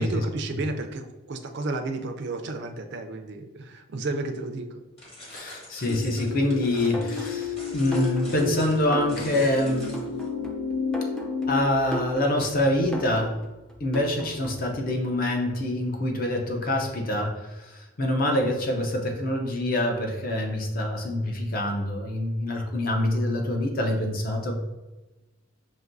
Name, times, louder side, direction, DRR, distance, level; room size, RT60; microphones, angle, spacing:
voice 1, 0.0-4.7, right 2 dB, 55° right, 5 dB, 0.4 m, -32 dB
sound 1, 5.0-10.3, left 1 dB, 30° left, 1.1 m, -45 dB
voice 2, 5.3-9.9 11.5-13.3 13.8-24.5, left 1 dB, 45° left, 2 dB, 0.6 m, -26 dB
sound 2, 5.9-11.6, left 7 dB, 80° left, 0.3 m, -31 dB
sound 3, 6.9-14.7, right 1 dB, 5° left, 0.4 m, -37 dB
5.8 x 2.6 x 2.6 m, 1.1 s
head